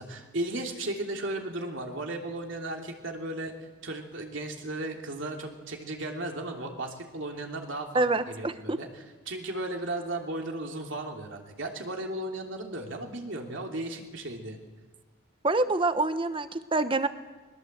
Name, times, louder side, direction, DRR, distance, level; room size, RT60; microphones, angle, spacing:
voice 1, 0.0-14.6, right 1 dB, 65° right, 2 dB, 3.0 m, -35 dB
voice 2, 7.9-8.8 15.4-17.1, right 2 dB, 25° right, 11 dB, 1.0 m, -26 dB
21.5 x 20.5 x 8.1 m, 1.3 s
head